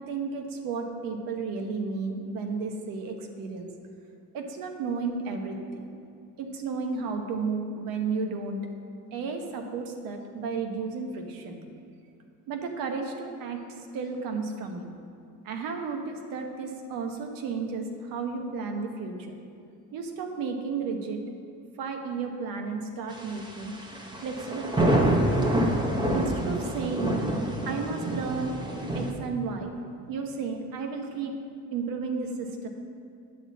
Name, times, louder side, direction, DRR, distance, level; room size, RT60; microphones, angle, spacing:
voice 1, 0.0-3.7 4.3-5.9 6.4-8.7 9.1-11.6 12.5-14.9 15.4-19.3 19.9-21.2 21.8-23.7 24.2-25.2 26.1-27.2 27.7-28.5 28.9-29.7 30.1-31.4 31.7-32.7, right 4 dB, 70° right, 4 dB, 1.1 m, -33 dB
sound 1, 23.2-29.1, right 1 dB, 10° right, 0.6 m, -26 dB
9.0 x 4.3 x 7.2 m, 2.5 s
cardioid pair, 170°, 35 cm